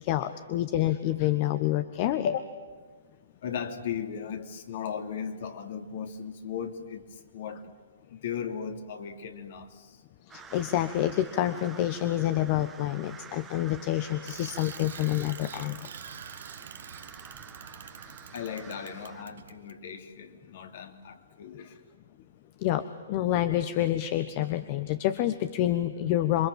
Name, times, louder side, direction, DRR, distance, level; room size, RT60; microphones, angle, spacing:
voice 1, 0.0-2.3 10.3-15.9 21.6-21.7 22.6-26.5, left 13 dB, 40° left, 12 dB, 1.2 m, -28 dB
voice 2, 3.4-7.6 8.1-10.0 18.3-21.7, left 7 dB, 55° left, 6 dB, 3.2 m, -36 dB
sound 1, 10.3-19.2, right 6 dB, 15° right, 1.5 m, -49 dB
Bicycle, 14.3-19.8, right 7 dB, 70° right, 1.5 m, -45 dB
28.0 x 24.5 x 7.6 m, 1.4 s
hypercardioid pair, 125°, 0 cm